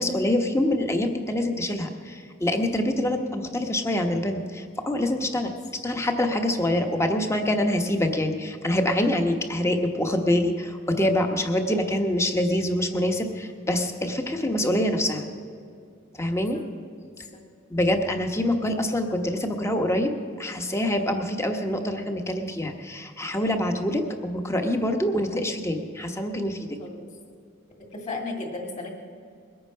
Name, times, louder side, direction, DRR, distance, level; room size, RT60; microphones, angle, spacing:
voice 1, 0.0-5.5 5.8-15.2 16.1-16.6 17.7-20.1 20.4-26.6, left 1 dB, 15° left, 5 dB, 1.1 m, -25 dB
voice 2, 27.8-29.0, left 3 dB, 35° left, 1 dB, 2.4 m, -35 dB
21.5 x 8.8 x 5.6 m, 2.3 s
head